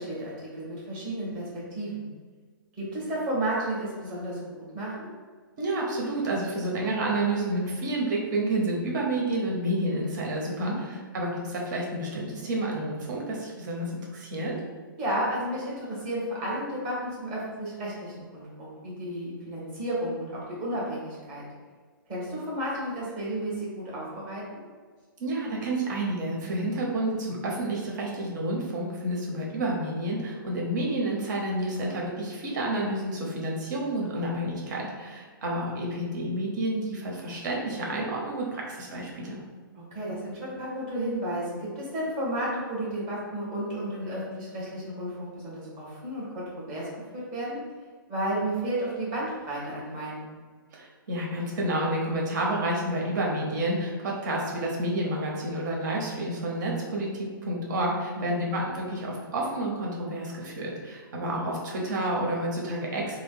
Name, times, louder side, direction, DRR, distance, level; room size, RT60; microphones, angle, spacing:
voice 1, 0.0-2.1 2.8-5.1 10.4-10.8 15.0-21.4 22.1-24.6 34.1-34.3 39.7-47.6 48.1-50.4 58.1-58.5, right 1 dB, 35° right, -6 dB, 1.4 m, -32 dB
voice 2, 5.6-14.6 25.2-39.4 50.7-63.2, right 1 dB, 55° right, -2 dB, 0.9 m, -30 dB
3.3 x 2.9 x 2.3 m, 1.5 s
hypercardioid pair, 130°, 12 cm